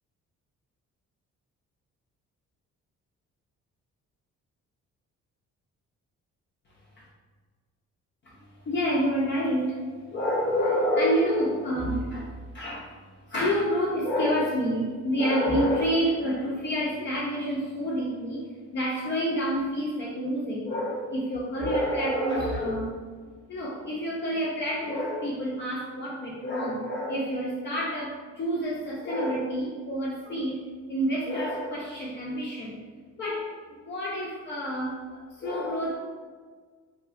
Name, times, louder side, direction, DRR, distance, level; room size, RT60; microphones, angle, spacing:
voice 1, 8.2-18.4 18.7-30.6 30.9-32.8 33.2-36.0, equal, 40° left, -6 dB, 0.5 m, -28 dB
2.8 x 2.4 x 2.4 m, 1.5 s
cardioid pair, 90°, 30 cm